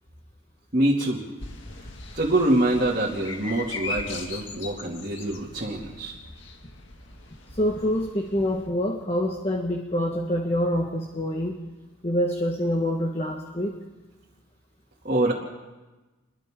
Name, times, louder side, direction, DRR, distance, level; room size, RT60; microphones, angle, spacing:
voice 1, 0.7-1.2 2.1-6.1 15.0-15.3, right 1 dB, 40° right, -4 dB, 2.6 m, -25 dB
sound 1, 1.4-8.7, left 3 dB, 60° left, 2.1 m, -39 dB
voice 2, 7.5-11.6 12.0-13.7, equal, 30° left, 1 dB, 1.6 m, -26 dB
29.0 x 23.0 x 3.8 m, 1.2 s
head